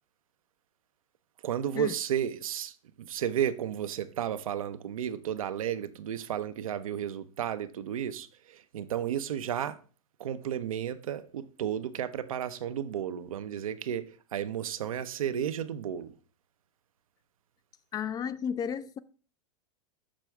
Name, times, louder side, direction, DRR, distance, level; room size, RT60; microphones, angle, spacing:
voice 1, 1.4-9.8 10.2-16.1, right 9 dB, 80° right, 0.6 m, -33 dB
voice 2, 17.9-19.0, left 8 dB, 20° left, 0.3 m, -33 dB
6.2 x 6.0 x 3.3 m
hypercardioid pair, 105°, 17 cm